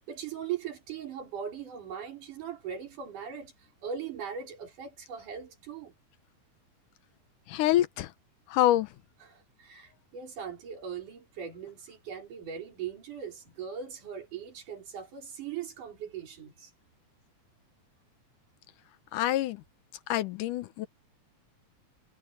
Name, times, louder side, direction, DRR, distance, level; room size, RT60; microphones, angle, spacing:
voice 1, 0.1-3.5 3.8-5.9 9.2-16.7, right 8 dB, 80° right, 5.8 m, -39 dB
voice 2, 7.5-8.1 8.5-8.9 19.1-19.6 20.1-20.9, left 14 dB, 85° left, 2.5 m, -26 dB
omnidirectional pair, 3.5 m